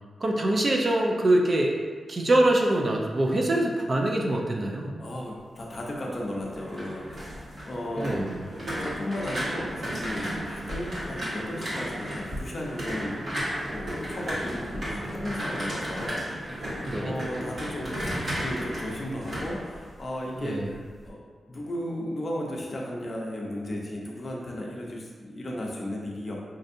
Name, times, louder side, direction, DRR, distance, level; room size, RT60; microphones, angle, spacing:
voice 1, 0.2-1.8 2.1-4.9 8.0-8.4 16.9-17.2 20.4-20.7, right 1 dB, 35° right, 1 dB, 0.4 m, -24 dB
voice 2, 5.0-8.2 8.8-13.2 13.7-21.2 21.5-26.4, left 1 dB, 35° left, -2 dB, 0.6 m, -35 dB
sound 1, 6.4-20.4 20.7-21.1, equal, 55° right, 1.3 m, -34 dB
5.2 x 2.6 x 2.6 m, 1.5 s
wide cardioid pair, 145°, 0 cm